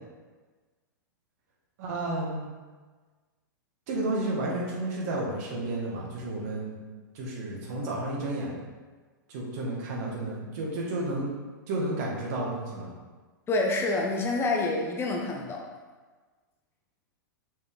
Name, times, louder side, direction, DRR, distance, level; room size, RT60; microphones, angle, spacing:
voice 1, 1.8-2.5 3.9-6.8 7.1-8.6 9.3-11.3 11.7-12.9, right 2 dB, 50° right, -3 dB, 1.9 m, -31 dB
voice 2, 13.5-15.7, left 2 dB, 20° left, 0 dB, 0.9 m, -27 dB
6.3 x 4.7 x 3.7 m, 1.4 s
hypercardioid pair, 105°, 11 cm